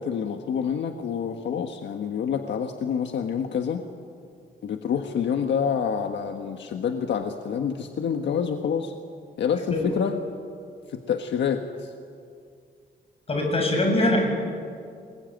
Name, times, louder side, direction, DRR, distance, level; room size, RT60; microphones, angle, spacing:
voice 1, 0.0-3.8 4.6-8.9 9.4-10.2 10.9-11.9, left 7 dB, 75° left, 5 dB, 1.5 m, -27 dB
voice 2, 13.3-14.3, left 1 dB, 30° left, 2 dB, 7.0 m, -22 dB
29.0 x 21.0 x 9.3 m, 2.3 s
wide cardioid pair, 150°, 19 cm